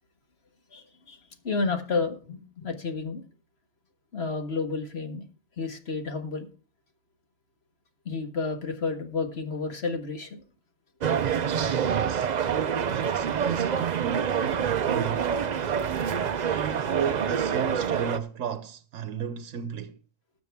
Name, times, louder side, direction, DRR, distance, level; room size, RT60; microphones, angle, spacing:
voice 1, 0.7-1.2 1.4-3.2 4.1-5.2 5.6-6.5 8.0-10.4, left 4 dB, 55° left, 1.8 m, -31 dB
sound 1, 11.0-18.2, right 7 dB, 55° right, 0.5 m, -27 dB
voice 2, 11.8-15.4 16.4-20.0, right 8 dB, 75° right, 1.1 m, -34 dB
19.0 x 7.1 x 3.5 m
omnidirectional pair, 1.3 m